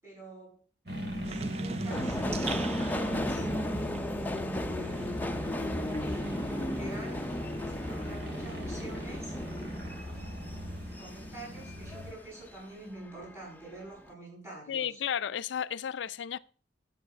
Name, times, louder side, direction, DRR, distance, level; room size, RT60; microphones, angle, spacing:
voice 1, 0.0-0.6 1.1-2.2 2.5-5.0 5.4-7.3 7.6-9.3 10.0-15.0, right 2 dB, 15° right, 7.1 m, -47 dB
sound 1, 0.9-12.1, equal, 60° right, 3.0 m, -38 dB
sound 2, 1.2-6.6 6.9-8.6, right 5 dB, 35° right, 0.4 m, -44 dB
Subway metro underground, 1.9-12.6 13.0-13.7 14.0-14.1, left 1 dB, 10° left, 0.6 m, -36 dB
voice 2, 14.7-16.4, left 8 dB, 80° left, 0.4 m, -33 dB
9.6 x 7.6 x 5.8 m
head